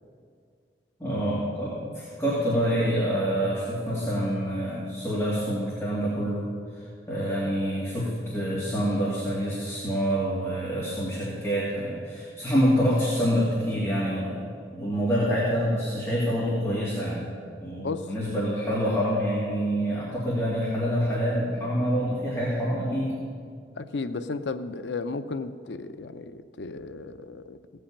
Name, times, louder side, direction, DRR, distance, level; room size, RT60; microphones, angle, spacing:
voice 1, 1.0-6.5 6.7-14.4 14.7-17.2 17.6-23.1, equal, 15° left, -8 dB, 2.5 m, -26 dB
voice 2, 17.8-18.3 23.8-27.6, left 3 dB, 80° left, 11 dB, 0.6 m, -34 dB
16.5 x 5.6 x 8.5 m, 2.2 s
head